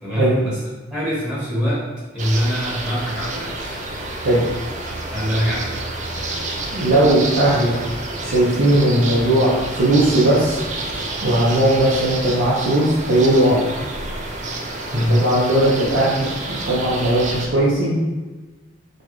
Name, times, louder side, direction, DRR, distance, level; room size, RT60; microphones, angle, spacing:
voice 1, 0.0-0.6 0.9-1.9 2.1-3.8 5.1-5.8 14.9-15.3, equal, 5° right, -8 dB, 1.1 m, -23 dB
sound 1, 2.2-17.5, right 2 dB, 40° right, 0.4 m, -29 dB
voice 2, 6.7-7.8 8.2-10.6 11.2-13.6 14.9-18.0, right 1 dB, 65° right, -9 dB, 0.8 m, -18 dB
4.4 x 2.3 x 3.0 m, 1.2 s
head